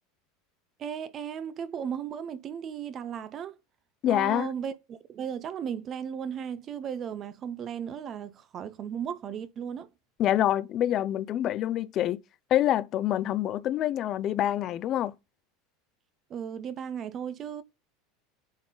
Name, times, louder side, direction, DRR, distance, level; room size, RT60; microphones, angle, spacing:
voice 1, 0.8-3.6 4.1-9.9 16.3-17.6, right 8 dB, 25° right, 0.5 m, -36 dB
voice 2, 4.0-4.5 10.2-12.2 12.5-15.1, left 12 dB, 30° left, 0.4 m, -26 dB
8.6 x 3.9 x 3.8 m
supercardioid pair, 175°, 0 cm